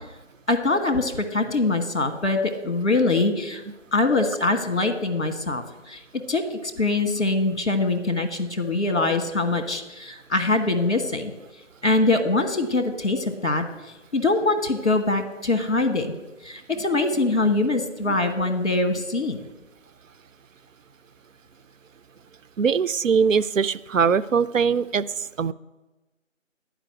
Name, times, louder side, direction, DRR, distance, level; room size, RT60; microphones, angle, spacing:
voice 1, 0.5-3.6 3.9-11.3 11.8-13.6 14.1-16.1 16.4-19.5, left 2 dB, 60° left, 7 dB, 1.3 m, -23 dB
voice 2, 22.6-25.1 25.4-25.5, right 6 dB, 85° right, 16 dB, 0.5 m, -21 dB
10.0 x 5.1 x 7.7 m, 1.1 s
figure-of-eight pair, 180°, 38 cm